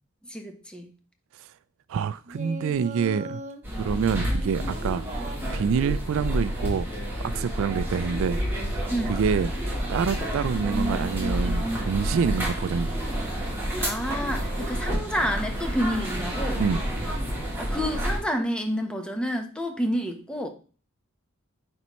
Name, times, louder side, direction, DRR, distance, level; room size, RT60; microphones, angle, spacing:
voice 1, 0.3-0.9 8.9-9.2 13.6-16.6 17.6-20.5, equal, 5° left, 1.0 m, -29 dB
voice 2, 1.9-3.4 3.8-5.0 5.5-6.9 7.2-8.4 9.1-9.5 9.9-12.9 16.6-16.8, right 6 dB, 70° right, 0.3 m, -26 dB
Singing, 2.3-3.6 4.1-6.1 6.9-7.5, left 1 dB, 35° right, 0.8 m, -40 dB
sound 1, 3.6-18.2, equal, 10° right, 2.6 m, -29 dB
9.7 x 4.1 x 3.1 m
head